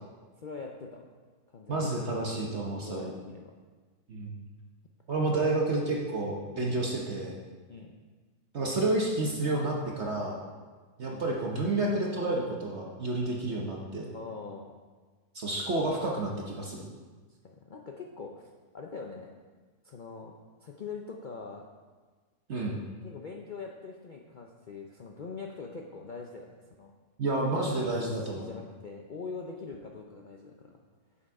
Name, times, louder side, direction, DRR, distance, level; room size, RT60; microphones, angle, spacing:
voice 1, 0.4-1.1 1.5-2.2 2.8-3.4 5.3-5.5 6.5-6.7 7.7-7.9 11.0-11.3 14.1-14.8 17.3-19.3 19.8-21.6 23.0-26.5 26.8-26.9 27.5-30.8, left 4 dB, 85° left, 1 dB, 0.4 m, -43 dB
voice 2, 1.7-3.1 4.1-4.4 5.1-7.4 8.5-10.4 11.0-14.1 15.3-16.8 22.5-22.8 27.2-28.5, right 2 dB, 50° right, -1 dB, 1.1 m, -30 dB
7.6 x 7.0 x 4.7 m, 1.4 s
omnidirectional pair, 1.7 m